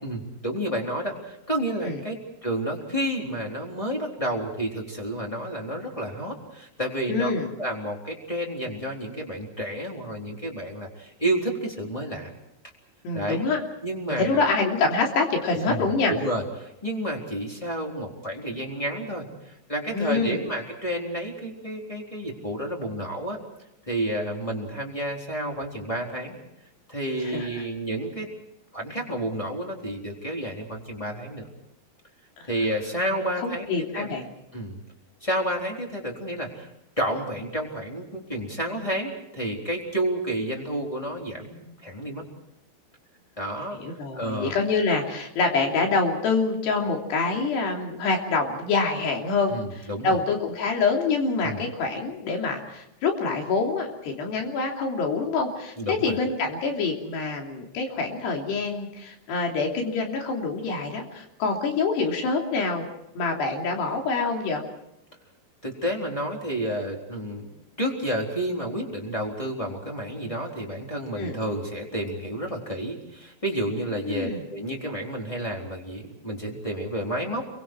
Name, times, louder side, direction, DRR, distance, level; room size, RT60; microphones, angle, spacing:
voice 1, 0.0-2.1 2.4-7.3 7.6-12.3 13.1-13.4 13.8-14.4 15.7-23.4 23.9-26.4 26.9-28.3 28.7-31.5 32.5-33.6 33.9-34.1 34.5-34.8 35.2-36.7 37.0-42.2 43.4-43.8 44.1-44.5 49.5-50.2 51.4-51.6 55.8-56.1 65.6-67.5 67.8-77.5, right 1 dB, 10° left, 0 dB, 3.3 m, -30 dB
voice 2, 7.1-7.5 13.0-13.6 14.1-16.1 19.9-20.4 27.3-27.5 32.4-32.5 33.4-34.3 43.7-62.9 63.1-64.6 71.2-71.4 74.0-74.4, left 4 dB, 70° left, 1 dB, 5.1 m, -26 dB
29.5 x 23.5 x 4.7 m, 0.83 s
omnidirectional pair, 5.1 m